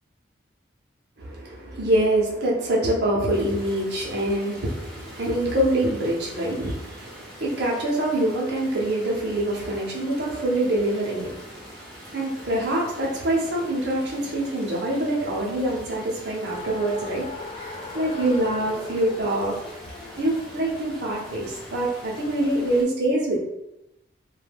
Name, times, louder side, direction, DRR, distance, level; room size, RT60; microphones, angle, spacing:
voice 1, 1.2-17.3 17.6-19.6 20.2-23.4, right 1 dB, 60° right, -3 dB, 0.7 m, -25 dB
sound 1, 3.3-22.8, equal, 5° left, 0.7 m, -44 dB
Race car auto racing, 16.5-22.8, left 3 dB, 30° left, 0.3 m, -40 dB
2.2 x 2.2 x 3.3 m, 0.88 s
head